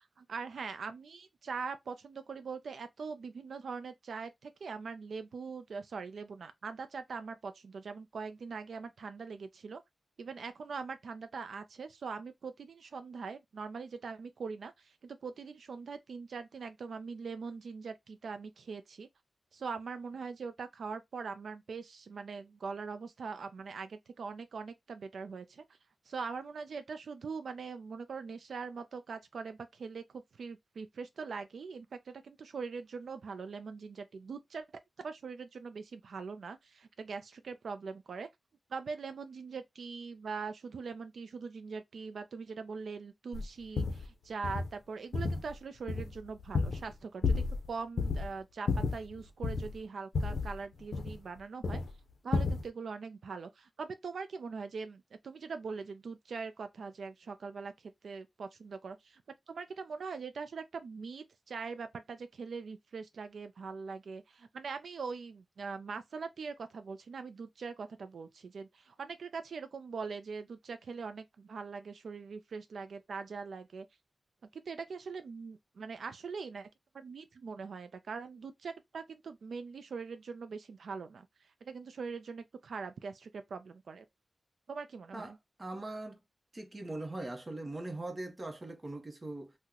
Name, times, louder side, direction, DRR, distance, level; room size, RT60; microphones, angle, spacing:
voice 1, 0.0-9.8 10.2-19.1 19.5-25.6 26.1-34.7 35.0-38.3 38.7-51.8 52.2-59.2 59.5-73.9 74.5-76.7 76.9-84.0 84.7-85.4, right 5 dB, 75° right, 0.3 m, -42 dB
sound 1, 43.3-43.4 43.8-44.1 44.4-44.7 45.1-45.6 45.9-46.9 47.2-47.7 48.0-48.3 48.7-49.8 50.1-51.4 51.6-51.9 52.3-52.6, left 4 dB, 75° left, 0.5 m, -32 dB
voice 2, 85.6-86.2 86.5-89.5, right 2 dB, 25° right, 0.7 m, -41 dB
2.8 x 2.0 x 3.6 m
wide cardioid pair, 140°, 0 cm